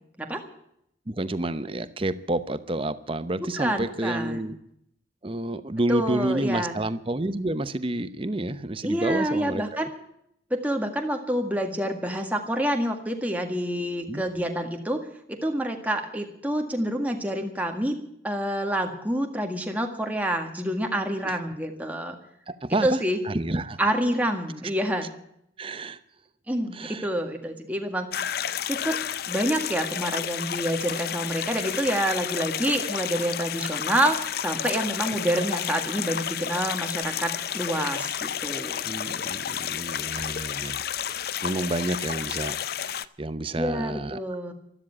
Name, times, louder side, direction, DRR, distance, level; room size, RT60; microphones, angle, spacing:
voice 1, 1.1-4.6 5.2-9.9 14.0-14.2 21.2-21.3 22.5-23.8 25.6-26.0 26.7-27.1 38.8-44.2, right 2 dB, 30° right, 13 dB, 0.8 m, -30 dB
voice 2, 3.4-4.5 5.9-6.8 8.8-9.9 10.5-15.0 15.3-18.0 18.2-22.2 22.8-23.2 23.8-25.1 26.5-28.1 28.7-29.0 29.3-38.8 43.6-44.5, right 1 dB, 10° right, 3 dB, 1.7 m, -27 dB
sound 1, 28.1-43.1, left 9 dB, 50° left, 0.5 m, -31 dB
13.5 x 12.5 x 8.6 m, 0.74 s
head